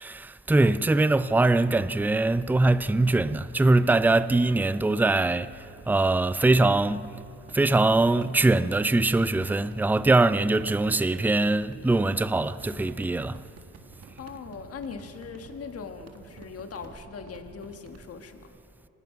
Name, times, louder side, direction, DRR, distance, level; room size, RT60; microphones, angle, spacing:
voice 1, 0.0-7.1 7.5-13.4, right 2 dB, 5° right, 0.5 m, -22 dB
sound 1, 1.4-18.1, right 5 dB, 55° right, 1.9 m, -50 dB
voice 2, 14.2-18.6, left 5 dB, 50° left, 1.6 m, -40 dB
25.5 x 19.5 x 5.9 m
cardioid pair, 90°, 30 cm